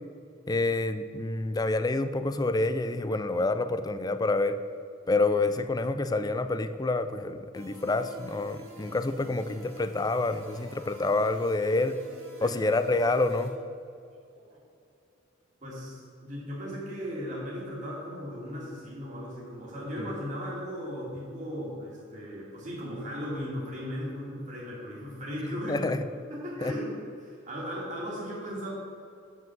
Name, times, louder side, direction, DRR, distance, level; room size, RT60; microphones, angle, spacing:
voice 1, 0.5-4.6 5.1-12.0 12.4-13.5 25.7-26.0 26.6-26.7, left 2 dB, 20° left, 10 dB, 0.4 m, -27 dB
sound 1, 7.5-13.5, right 2 dB, 75° right, 2.4 m, -50 dB
voice 2, 15.6-25.9 26.3-28.7, equal, 35° right, -5 dB, 2.2 m, -37 dB
7.3 x 5.9 x 7.6 m, 2.4 s
head